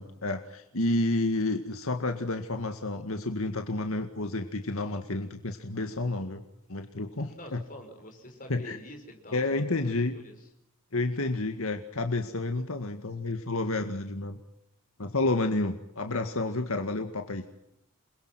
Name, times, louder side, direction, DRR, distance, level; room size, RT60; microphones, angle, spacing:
voice 1, 0.0-6.4 6.7-7.6 8.5-8.8 9.3-10.2 10.9-14.4 15.0-17.4, left 2 dB, 75° left, 6 dB, 2.0 m, -30 dB
voice 2, 7.3-10.5, equal, 40° left, 5 dB, 5.7 m, -46 dB
29.5 x 22.0 x 6.0 m, 0.81 s
head